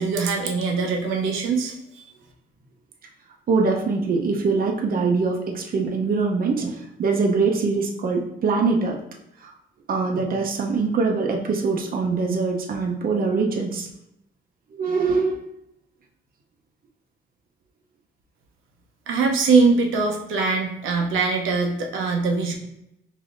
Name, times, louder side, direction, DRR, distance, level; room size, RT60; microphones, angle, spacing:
voice 1, 0.0-2.0 19.1-22.5, right 4 dB, 85° right, 1 dB, 0.8 m, -22 dB
voice 2, 3.5-9.0 9.4-9.5 9.9-13.9 14.7-15.4, right 4 dB, 45° right, 1 dB, 0.7 m, -23 dB
5.0 x 2.7 x 2.5 m, 0.84 s
cardioid pair, 90°, 20 cm